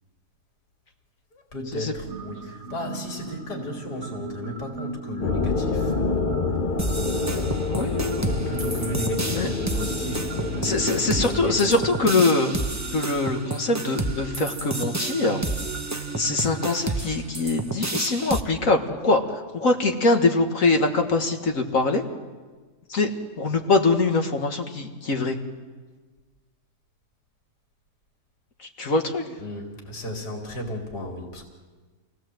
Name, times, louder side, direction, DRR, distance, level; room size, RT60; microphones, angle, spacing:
voice 1, 1.3-6.4 7.2-7.7 8.1-11.7 29.4-31.5, left 1 dB, 75° left, 1 dB, 3.7 m, -34 dB
sound 1, 2.1-16.8, right 4 dB, 50° right, 1.3 m, -37 dB
sound 2, 5.2-12.2, left 4 dB, 35° left, 0.9 m, -28 dB
sound 3, 6.8-18.4, right 2 dB, 15° right, 0.7 m, -30 dB
voice 2, 7.7-8.2 9.3-9.5 10.6-12.6 12.9-15.4 16.1-19.2 19.5-22.0 22.9-23.1 23.4-25.4 28.8-29.4, left 3 dB, 55° left, 4 dB, 2.0 m, -23 dB
28.0 x 18.0 x 7.8 m, 1.4 s
omnidirectional pair, 1.8 m